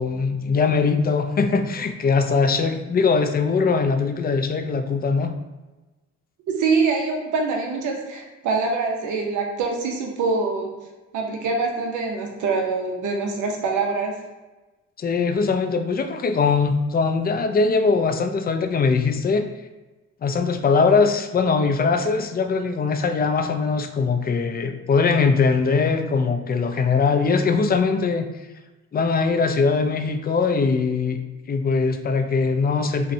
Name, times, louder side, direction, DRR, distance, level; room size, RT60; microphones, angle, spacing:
voice 1, 0.0-5.3 15.0-19.5 20.2-28.3 28.9-31.2 31.5-33.1, left 4 dB, 30° left, 7 dB, 0.4 m, -21 dB
voice 2, 6.5-10.7 11.1-14.1, right 4 dB, 75° right, 1 dB, 0.8 m, -24 dB
5.4 x 2.2 x 2.7 m, 1.2 s
cardioid pair, 90°, 30 cm